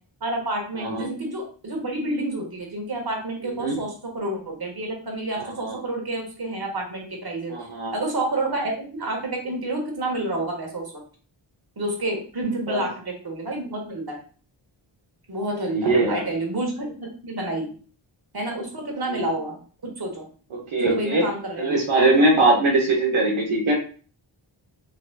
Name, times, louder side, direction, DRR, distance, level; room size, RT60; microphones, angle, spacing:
voice 1, 0.2-10.9 11.8-14.2 15.3-17.7 18.3-20.2 20.8-21.8, right 2 dB, 50° right, 0 dB, 1.5 m, -29 dB
voice 2, 3.4-3.8 5.4-5.8 7.5-7.9 12.7-12.9 15.7-16.2 19.1-19.3 20.5-21.3 21.6-23.8, right 2 dB, 75° right, -3 dB, 0.9 m, -21 dB
3.9 x 3.0 x 2.2 m, 0.39 s
cardioid pair, 40°, 49 cm